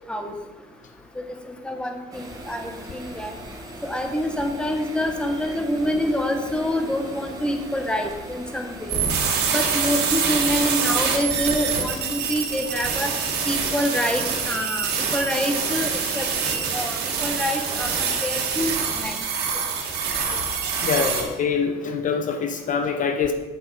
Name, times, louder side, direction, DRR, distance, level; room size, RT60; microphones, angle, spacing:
voice 1, 1.6-3.3 3.8-9.0 9.5-13.1 13.5-19.1, equal, 5° left, 4 dB, 1.1 m, -26 dB
sound 1, 2.1-8.9, right 1 dB, 20° right, 1.3 m, -40 dB
sound 2, 8.9-21.2, right 6 dB, 75° right, 1.8 m, -25 dB
voice 2, 20.8-23.3, left 6 dB, 50° left, 6 dB, 0.7 m, -25 dB
8.2 x 5.5 x 4.8 m, 1.2 s
cardioid pair, 110°, 17 cm